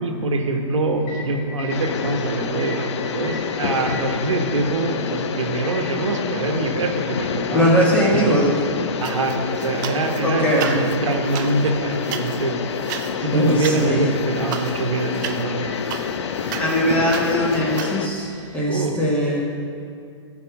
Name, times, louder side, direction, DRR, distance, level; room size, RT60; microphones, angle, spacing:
voice 1, 0.0-8.4 9.0-12.6 13.2-15.6 18.7-19.0, right 2 dB, 90° right, 3 dB, 1.1 m, -24 dB
Microwave oven, 0.7-18.7, left 1 dB, 35° left, 2.0 m, -42 dB
sound 1, 1.7-18.1, left 7 dB, 65° left, 0.6 m, -28 dB
voice 2, 7.5-8.5 10.2-10.7 13.3-14.1 16.6-18.3 18.5-19.4, equal, 10° left, -3 dB, 1.4 m, -20 dB
sound 2, 9.0-10.2 10.5-17.9, right 9 dB, 40° right, 0.5 m, -34 dB
9.9 x 4.7 x 7.0 m, 2.4 s
hypercardioid pair, 145°, 15 cm